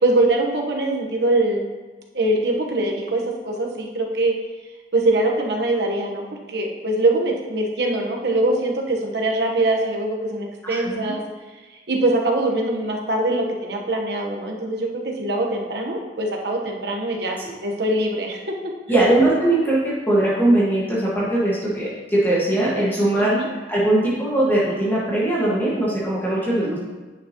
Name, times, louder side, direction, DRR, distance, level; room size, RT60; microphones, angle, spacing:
voice 1, 0.0-1.7 2.1-4.3 4.9-11.2 11.9-18.5 18.9-19.0 23.2-23.5 26.6-26.8, right 2 dB, 65° right, 1 dB, 1.1 m, -23 dB
voice 2, 10.6-11.1 18.9-23.3 23.7-26.8, right 1 dB, 10° left, -8 dB, 1.5 m, -20 dB
9.6 x 5.8 x 2.9 m, 1.3 s
head